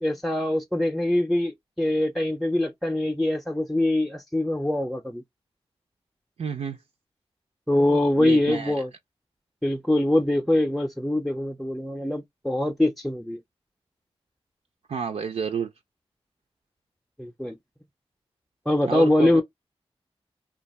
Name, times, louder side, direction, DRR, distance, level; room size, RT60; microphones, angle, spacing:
voice 1, 0.0-5.2 7.7-8.9 9.6-13.4 17.2-17.6 18.7-19.4, left 1 dB, ahead, 0.5 m, -23 dB
voice 2, 6.4-6.8 7.9-8.7 14.9-15.7 18.9-19.4, right 6 dB, 85° right, 0.4 m, -30 dB
2.5 x 2.3 x 4.0 m
wide cardioid pair, 80°, 11 cm